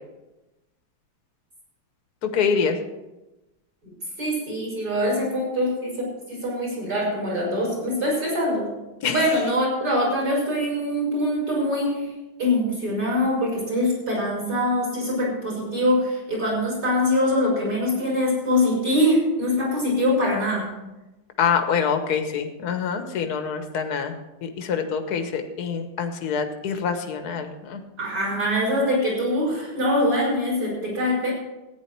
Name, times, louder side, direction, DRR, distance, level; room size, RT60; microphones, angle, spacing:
voice 1, 2.2-2.8 9.0-9.2 21.4-24.1 24.4-27.8, left 6 dB, 55° left, 6 dB, 1.6 m, -25 dB
voice 2, 4.2-8.7 9.0-12.1 12.4-20.7 28.0-31.3, left 1 dB, 45° right, -2 dB, 6.1 m, -23 dB
14.5 x 9.8 x 4.6 m, 1.0 s
omnidirectional pair, 2.2 m